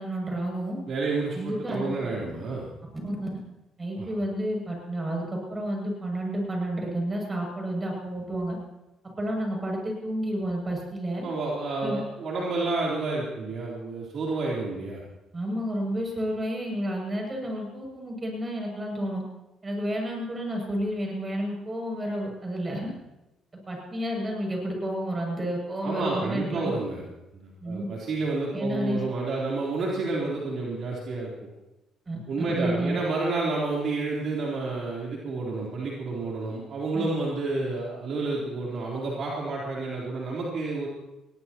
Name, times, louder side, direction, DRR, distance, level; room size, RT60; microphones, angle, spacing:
voice 1, 0.0-0.8 1.3-2.3 3.0-3.3 3.8-8.6 9.0-11.3 11.8-12.0 15.3-19.2 19.6-22.9 23.7-26.7 27.6-27.8 28.5-29.0 32.1-32.2 32.5-33.0 36.9-37.0, right 1 dB, 25° right, 0 dB, 7.5 m, -30 dB
voice 2, 0.9-2.7 4.0-4.1 11.2-15.0 25.8-27.0 27.4-31.3 32.3-40.9, right 3 dB, 60° right, -4 dB, 3.8 m, -30 dB
21.5 x 18.0 x 3.1 m, 0.98 s
cardioid pair, 85°, 0 cm